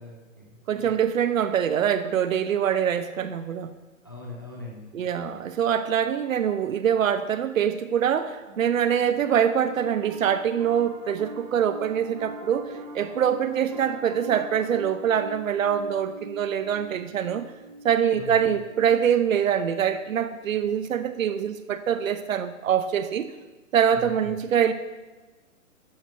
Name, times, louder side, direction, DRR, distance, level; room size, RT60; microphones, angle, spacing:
voice 1, 0.0-0.6 4.0-4.9 18.1-18.5 23.9-24.3, left 3 dB, 20° left, -2 dB, 0.5 m, -41 dB
voice 2, 0.7-3.7 4.9-17.4 17.8-23.3 23.7-24.7, right 8 dB, 80° right, 12 dB, 0.7 m, -24 dB
Piano, 8.5-19.9, equal, 30° right, 0.9 m, -42 dB
11.5 x 5.9 x 2.7 m, 1.2 s
hypercardioid pair, 175°, 40 cm